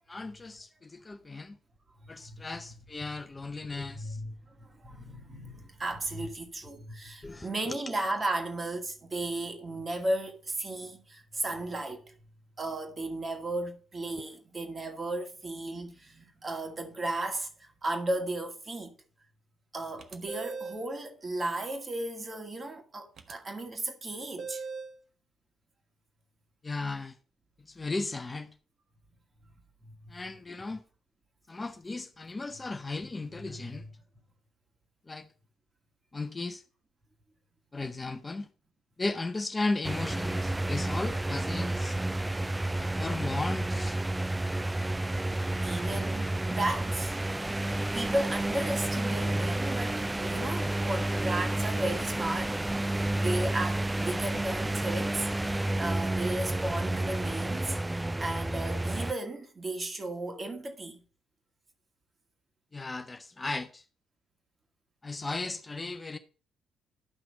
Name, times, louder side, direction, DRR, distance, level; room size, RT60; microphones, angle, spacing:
voice 1, 0.1-1.6 2.1-4.2 7.2-7.8 26.6-27.2 27.7-28.5 30.1-30.8 31.5-33.8 35.1-35.3 36.1-36.6 37.7-38.5 39.0-42.0 42.8-44.0 62.7-63.8 65.0-66.2, left 3 dB, 25° left, 0.6 m, -36 dB
voice 2, 2.0-2.8 3.8-12.2 12.6-18.9 19.7-24.6 29.8-30.1 33.3-33.9 45.6-47.2 47.6-61.0, right 2 dB, 30° right, 2.0 m, -35 dB
sound 1, 20.0-20.9 23.2-23.3 24.4-25.0, right 5 dB, 45° right, 0.9 m, -39 dB
sound 2, 39.8-59.1, right 1 dB, 15° right, 0.3 m, -30 dB
11.0 x 5.9 x 4.2 m
figure-of-eight pair, 45°, 0 cm